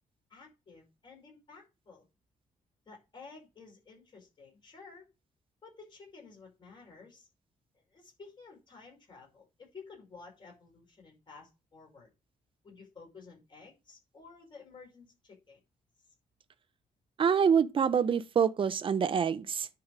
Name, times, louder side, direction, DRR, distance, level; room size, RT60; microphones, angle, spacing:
voice 1, 0.3-2.1 2.9-5.0 5.6-7.3 7.7-12.1 12.6-15.6, left 4 dB, 35° left, 5.3 m, -53 dB
voice 2, 17.2-19.7, right 7 dB, 40° right, 0.7 m, -26 dB
10.5 x 4.9 x 5.0 m
wide cardioid pair, 150°, 14 cm